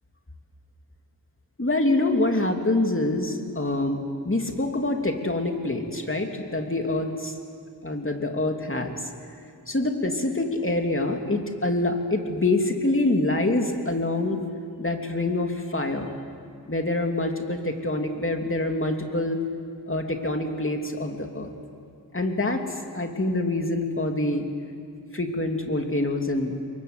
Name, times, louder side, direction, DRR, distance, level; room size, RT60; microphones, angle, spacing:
voice 1, 1.6-7.3 7.8-9.0 9.7-14.4 14.8-16.1 16.7-19.4 19.9-21.5 22.1-24.5 25.1-26.6, left 2 dB, 30° left, 3 dB, 3.0 m, -26 dB
29.0 x 23.0 x 8.2 m, 2.4 s
wide cardioid pair, 55°, 40 cm